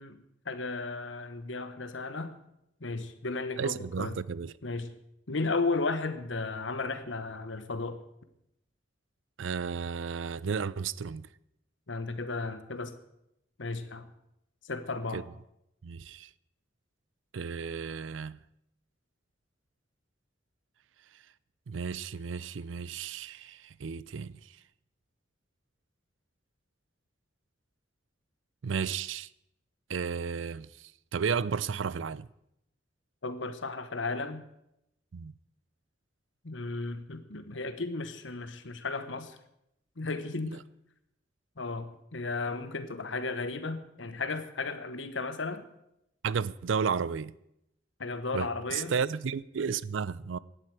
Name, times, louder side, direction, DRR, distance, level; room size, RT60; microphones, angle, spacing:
voice 1, 0.0-2.4 2.8-4.2 4.6-4.9 5.3-8.0 11.9-12.9 13.6-14.1 14.6-15.2 33.2-34.4 36.4-39.4 40.0-40.6 41.6-45.6 48.0-48.9, left 3 dB, 80° left, 1.2 m, -34 dB
voice 2, 3.6-4.5 9.4-11.3 15.1-15.2 15.8-16.3 17.3-18.4 21.7-24.4 28.6-29.3 29.9-32.3 35.1-35.3 40.4-40.6 46.2-47.3 48.3-50.4, right 6 dB, 80° right, 0.5 m, -33 dB
17.5 x 11.5 x 4.8 m
head